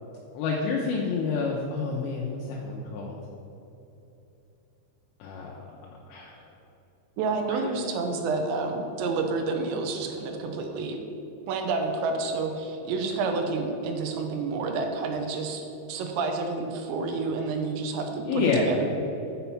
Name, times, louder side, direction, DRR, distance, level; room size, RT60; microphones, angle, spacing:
voice 1, 0.3-3.2 5.2-5.7 6.1-6.4 7.5-7.6 18.3-18.7, left 4 dB, 80° left, -3 dB, 2.9 m, -28 dB
voice 2, 7.2-11.0 11.5-15.6 15.9-18.9, right 3 dB, 80° right, 4 dB, 2.8 m, -29 dB
7.0 x 5.7 x 5.7 m, 3.0 s
omnidirectional pair, 5.3 m